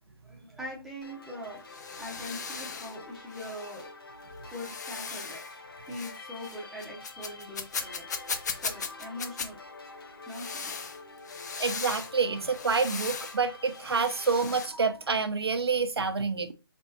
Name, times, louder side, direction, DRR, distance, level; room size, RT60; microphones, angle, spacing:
voice 1, 0.2-1.6 2.0-3.9 4.5-5.4 5.9-8.0 8.5-9.6 10.3-10.7, left 1 dB, ahead, 0.7 m, -42 dB
sound 1, 1.0-14.7, left 3 dB, 65° left, 1.0 m, -47 dB
sound 2, 1.5-3.0 3.3-3.9 4.5-5.5 5.9-6.2 6.4-9.5 10.3-12.1 12.4-13.4 13.7-14.7, left 5 dB, 45° left, 0.7 m, -38 dB
voice 2, 11.6-16.5, right 4 dB, 85° right, 0.8 m, -28 dB
5.2 x 3.5 x 2.8 m
hypercardioid pair, 160°, 13 cm